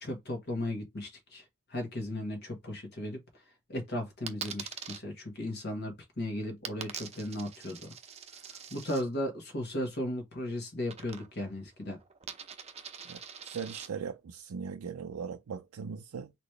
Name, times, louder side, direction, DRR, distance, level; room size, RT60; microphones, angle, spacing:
voice 1, 0.0-1.4 1.7-3.2 3.7-7.9 8.7-12.0, left 1 dB, 50° left, 1.5 m, -36 dB
Coin (dropping), 4.3-5.0 6.7-9.0 10.9-11.5 11.8-13.9, right 7 dB, 30° right, 0.6 m, -43 dB
voice 2, 13.0-16.3, right 6 dB, 85° right, 0.4 m, -39 dB
4.1 x 3.0 x 3.2 m
head